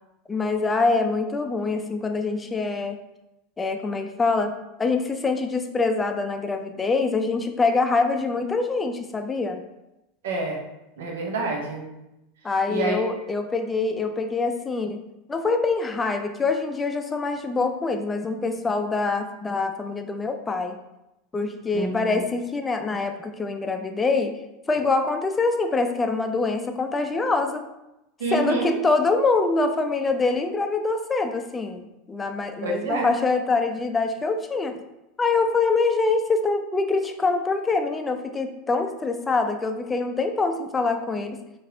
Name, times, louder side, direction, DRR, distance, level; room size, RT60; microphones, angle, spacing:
voice 1, 0.3-3.0 3.6-4.5 4.8-9.6 12.4-15.0 15.3-20.8 21.3-24.3 24.7-27.7 28.3-34.8 35.2-41.4, left 3 dB, 20° left, 6 dB, 0.4 m, -24 dB
voice 2, 10.2-10.6 11.0-11.8 12.7-13.0 21.7-22.2 28.2-28.7 32.6-33.1, right 3 dB, 70° right, -1 dB, 0.8 m, -27 dB
3.9 x 2.4 x 2.7 m, 0.93 s
hypercardioid pair, 85°, 0 cm